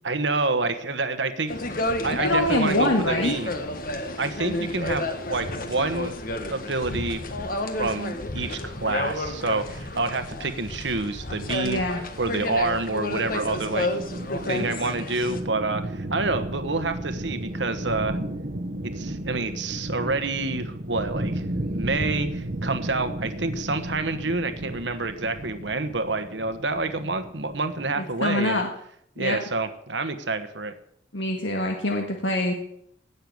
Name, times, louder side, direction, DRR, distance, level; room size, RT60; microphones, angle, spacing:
voice 1, 0.0-1.5 2.0-3.5 4.2-6.1 6.5-7.2 7.8-11.8 12.2-13.9 14.5-18.2 19.0-21.4 21.7-28.6 29.2-30.7, right 3 dB, 75° right, 10 dB, 1.3 m, -28 dB
sound 1, 1.5-15.4, left 2 dB, 50° left, 1.5 m, -31 dB
voice 2, 2.1-3.4 11.6-12.0 28.0-28.7 29.2-29.4 31.1-32.5, left 1 dB, 80° left, 2 dB, 1.7 m, -24 dB
sound 2, 13.1-27.9, right 1 dB, 50° right, 1.0 m, -34 dB
17.5 x 6.9 x 8.0 m, 0.69 s
head